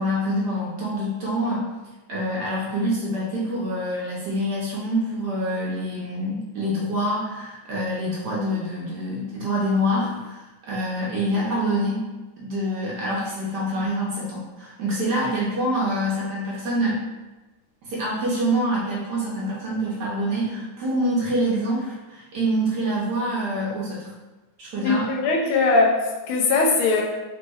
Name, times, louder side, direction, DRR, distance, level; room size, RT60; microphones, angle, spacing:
voice 1, 0.0-1.7 2.1-12.0 12.4-17.0 17.8-24.1 24.6-25.1, equal, 65° right, -5 dB, 1.1 m, -26 dB
voice 2, 24.8-27.0, left 3 dB, 85° left, -1 dB, 1.5 m, -20 dB
4.0 x 2.1 x 3.4 m, 1.1 s
omnidirectional pair, 2.3 m